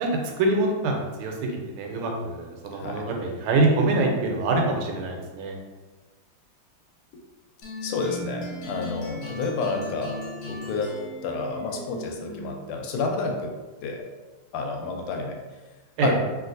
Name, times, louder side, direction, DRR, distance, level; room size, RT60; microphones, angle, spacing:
voice 1, 0.0-5.5 16.0-16.1, right 2 dB, 90° right, 1 dB, 1.5 m, -25 dB
sound 1, 7.6-12.7, left 2 dB, 65° left, 1.2 m, -36 dB
voice 2, 7.8-10.2 10.5-10.9 11.2-13.5 13.8-14.0 14.5-15.4 16.0-16.2, left 4 dB, 85° left, 2 dB, 1.4 m, -30 dB
3.1 x 2.9 x 2.5 m, 1.2 s
omnidirectional pair, 2.3 m